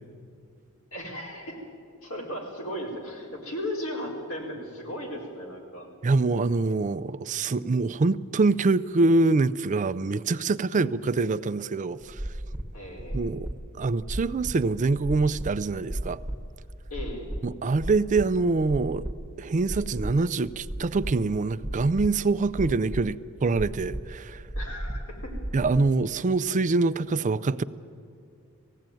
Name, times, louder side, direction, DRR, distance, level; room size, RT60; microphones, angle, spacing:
voice 1, 0.9-1.6 2.0-5.9 12.7-13.3 16.9-17.4 24.6-25.3, equal, 85° left, 4.2 m, -36 dB
voice 2, 6.0-12.2 13.1-13.5 13.7-16.2 17.4-19.0 19.4-24.4 25.5-27.6, right 3 dB, 35° right, 0.4 m, -25 dB
sound 1, 12.0-25.8, right 1 dB, 5° right, 1.2 m, -35 dB
19.0 x 16.0 x 9.1 m
head